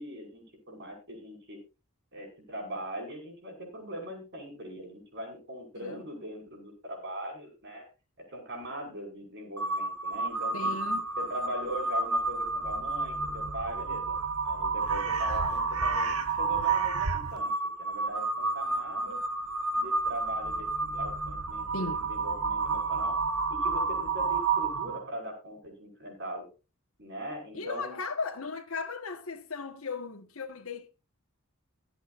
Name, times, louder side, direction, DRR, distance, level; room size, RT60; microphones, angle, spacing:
voice 1, 0.0-1.6 2.1-7.9 8.2-10.8 11.2-14.2 14.4-17.5 17.8-19.2 19.7-23.2 23.5-26.5 27.0-28.0, equal, 55° right, 5.8 m, -40 dB
Crow, 9.6-25.1, right 4 dB, 80° right, 1.5 m, -30 dB
voice 2, 10.5-11.0 21.7-22.0 27.5-30.9, left 4 dB, 70° left, 1.5 m, -36 dB
24.0 x 8.0 x 2.6 m
head